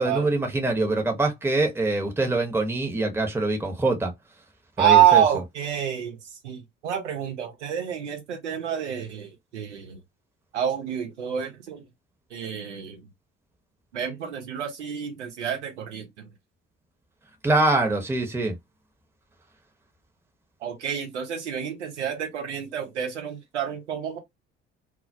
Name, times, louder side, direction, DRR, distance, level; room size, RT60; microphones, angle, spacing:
voice 1, 0.0-4.1 4.8-5.2 17.4-18.5, right 2 dB, 5° right, 0.8 m, -24 dB
voice 2, 4.8-6.2 6.4-10.0 10.5-11.8 12.3-13.0 13.9-16.3 20.6-24.2, right 10 dB, 80° right, 0.8 m, -26 dB
2.2 x 2.1 x 2.6 m
figure-of-eight pair, 55°, 35 cm